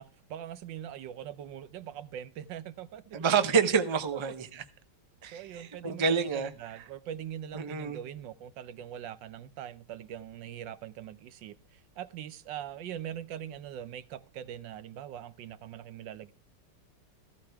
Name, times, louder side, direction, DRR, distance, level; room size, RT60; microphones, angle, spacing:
voice 1, 0.0-3.2 4.1-4.2 5.3-16.3, right 10 dB, 85° right, 1.5 m, -42 dB
voice 2, 3.1-4.6 5.2-6.8 7.5-8.0, right 6 dB, 30° right, 0.5 m, -28 dB
15.0 x 12.5 x 3.5 m
omnidirectional pair, 1.9 m